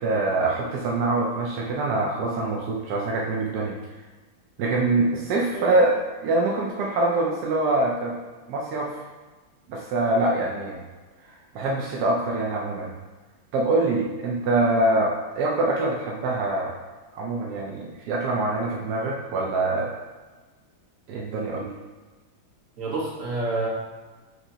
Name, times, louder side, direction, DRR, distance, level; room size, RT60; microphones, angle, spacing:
voice 1, 0.0-3.8 4.6-8.2 8.5-9.0 9.7-10.8 11.5-12.9 13.5-16.7 17.1-19.9 21.1-21.7, right 2 dB, 80° right, -2 dB, 0.9 m, -24 dB
voice 2, 22.8-23.7, right 2 dB, 45° right, -5 dB, 1.3 m, -28 dB
6.3 x 2.9 x 2.7 m, 1.3 s
omnidirectional pair, 2.3 m